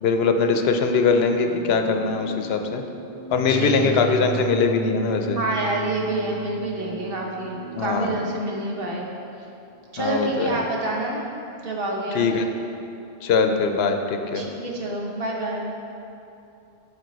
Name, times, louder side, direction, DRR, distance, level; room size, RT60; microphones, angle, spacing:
voice 1, 0.0-2.8 3.3-5.4 7.7-8.2 10.0-10.6 12.1-12.4 13.2-14.5, left 5 dB, 75° left, 5 dB, 0.8 m, -21 dB
sound 1, 1.2-9.3, right 6 dB, 5° left, 1.1 m, -36 dB
voice 2, 3.5-3.9 4.3-4.4 5.3-9.1 9.9-11.3 11.6-12.3 14.3-15.8, right 2 dB, 65° right, -1 dB, 1.1 m, -27 dB
7.6 x 5.1 x 3.9 m, 2.8 s
omnidirectional pair, 1.1 m